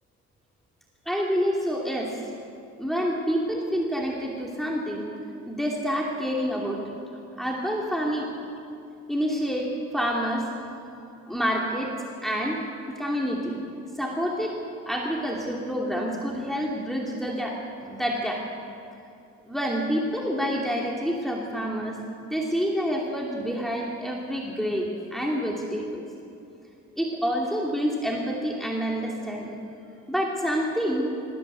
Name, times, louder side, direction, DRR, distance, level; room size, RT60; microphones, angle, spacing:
voice 1, 1.1-2.2 2.8-5.1 5.5-7.0 7.4-8.3 9.1-9.7 9.9-10.5 10.9-11.9 12.2-12.6 12.9-13.5 13.9-14.5 14.9-18.4 19.5-22.0 22.2-26.0 27.0-29.5 30.1-31.1, equal, ahead, -2 dB, 2.8 m, -28 dB
20.0 x 15.5 x 8.3 m, 2.7 s
cardioid pair, 90°, 30 cm